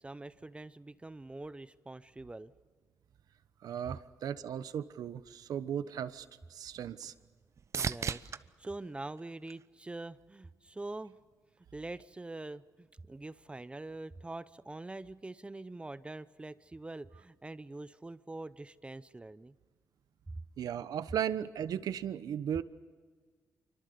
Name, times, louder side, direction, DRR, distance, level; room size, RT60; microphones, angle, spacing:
voice 1, 0.0-2.5 7.7-11.2 11.6-19.5 20.3-20.4, right 2 dB, 15° right, 15 dB, 0.7 m, -44 dB
voice 2, 3.6-7.1 20.6-22.6, right 9 dB, 75° right, 13 dB, 1.1 m, -36 dB
sound 1, 6.0-10.2 10.7-11.3 19.2-19.3, right 6 dB, 50° right, 0.8 m, -41 dB
26.5 x 24.5 x 6.9 m, 1.5 s
cardioid pair, 90°, 6 cm